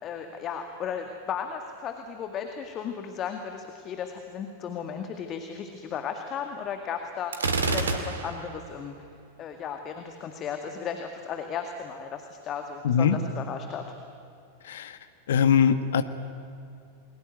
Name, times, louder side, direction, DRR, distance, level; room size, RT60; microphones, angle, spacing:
voice 1, 0.0-9.1 9.4-13.9, left 7 dB, 30° left, 5 dB, 2.0 m, -35 dB
Gunshot gunfire, 7.3-8.6, right 4 dB, 70° right, 2.5 m, -27 dB
voice 2, 12.8-13.2 14.7-14.9 15.3-16.0, left 7 dB, 60° left, 11 dB, 1.5 m, -21 dB
29.5 x 22.0 x 9.3 m, 2.6 s
figure-of-eight pair, 90°, 0 cm